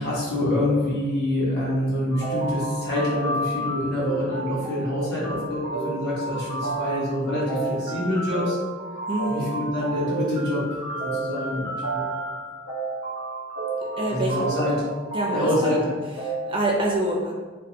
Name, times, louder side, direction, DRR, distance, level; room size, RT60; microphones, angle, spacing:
voice 1, 0.0-8.6 9.3-12.0 14.1-14.7 15.3-15.9, left 1 dB, 55° left, -8 dB, 1.2 m, -26 dB
sound 1, 2.1-16.5, right 2 dB, 85° left, 1.1 m, -31 dB
voice 2, 9.1-9.5 13.8-14.4 15.1-15.8 16.2-17.4, right 1 dB, 25° right, -2 dB, 0.4 m, -26 dB
3.3 x 2.2 x 2.8 m, 1.4 s
head